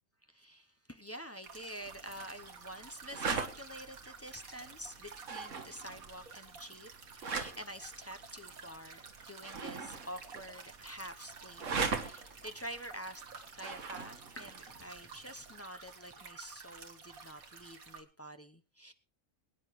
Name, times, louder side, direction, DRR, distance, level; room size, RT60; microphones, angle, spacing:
voice 1, 0.3-13.2 13.5-18.9, equal, 15° left, 7 dB, 0.6 m, -47 dB
sound 1, 1.4-18.0, right 5 dB, 90° right, 2.1 m, -52 dB
sound 2, 1.8-15.6, right 5 dB, 65° right, 1.7 m, -42 dB
23.0 x 9.7 x 3.2 m, 0.31 s
omnidirectional pair, 1.4 m